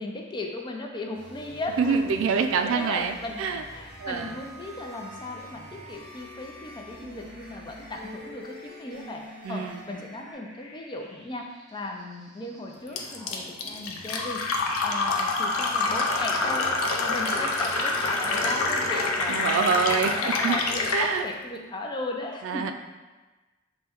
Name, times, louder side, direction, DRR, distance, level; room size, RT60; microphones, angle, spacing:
voice 1, 0.0-9.2 9.5-14.4 14.8-19.8 20.1-22.7, left 2 dB, 20° left, 1 dB, 0.4 m, -36 dB
sound 1, 1.1-10.3, equal, 25° right, 1.5 m, -46 dB
voice 2, 1.8-3.6 4.0-4.3 9.4-9.8 19.3-20.6 20.9-21.2 22.4-22.7, right 5 dB, 70° right, 7 dB, 0.3 m, -26 dB
sound 2, 3.3-18.7, equal, ahead, 0.8 m, -46 dB
Fill (with liquid), 13.0-21.1, left 3 dB, 85° left, 0.5 m, -26 dB
5.3 x 2.2 x 2.9 m, 1.2 s
head